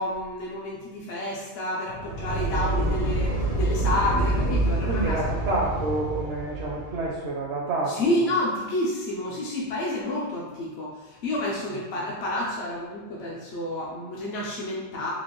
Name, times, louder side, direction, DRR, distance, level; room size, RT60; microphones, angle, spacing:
voice 1, 0.0-5.2 7.9-15.1, left 1 dB, 70° left, -4 dB, 0.9 m, -29 dB
sound 1, 1.9-7.1, right 1 dB, 85° left, 1.5 m, -27 dB
voice 2, 4.9-8.2, right 2 dB, 70° right, -3 dB, 0.8 m, -28 dB
4.4 x 2.4 x 3.0 m, 1.3 s
omnidirectional pair, 1.2 m